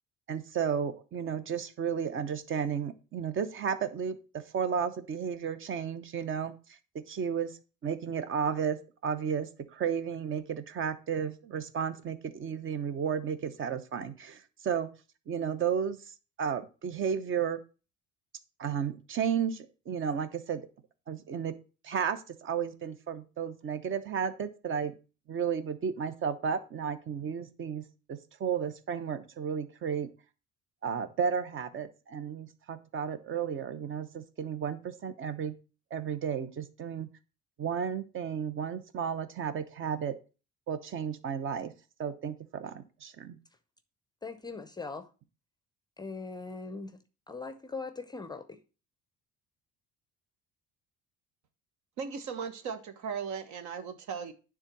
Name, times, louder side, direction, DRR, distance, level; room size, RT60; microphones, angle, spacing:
voice 1, 0.3-6.5 6.9-14.9 15.3-16.0 16.4-17.6 18.6-20.6 21.1-21.5 21.8-24.9 25.3-30.1 30.8-35.5 35.9-37.1 37.6-40.1 40.7-41.7 42.0-43.4, right 7 dB, 40° right, 0.9 m, -33 dB
voice 2, 44.2-45.1 46.0-48.6, left 4 dB, 15° left, 0.6 m, -41 dB
voice 3, 52.0-54.3, right 6 dB, 70° right, 1.3 m, -37 dB
9.7 x 3.7 x 6.0 m
cardioid pair, 150°, 30 cm